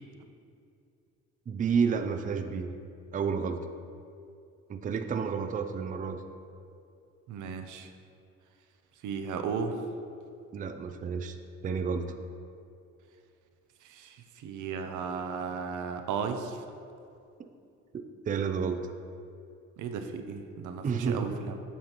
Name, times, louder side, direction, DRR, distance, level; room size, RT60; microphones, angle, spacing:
voice 1, 1.5-2.7 3.1-3.6 4.7-6.2 10.5-11.4 11.6-12.2 17.4-17.5 18.3-18.9 20.8-21.3, right 6 dB, 25° right, 7 dB, 0.4 m, -30 dB
voice 2, 7.3-7.9 9.0-9.8 13.8-16.6 19.8-21.6, right 6 dB, 80° right, 5 dB, 0.7 m, -35 dB
8.4 x 5.6 x 3.0 m, 2.5 s
cardioid pair, 90°, 30 cm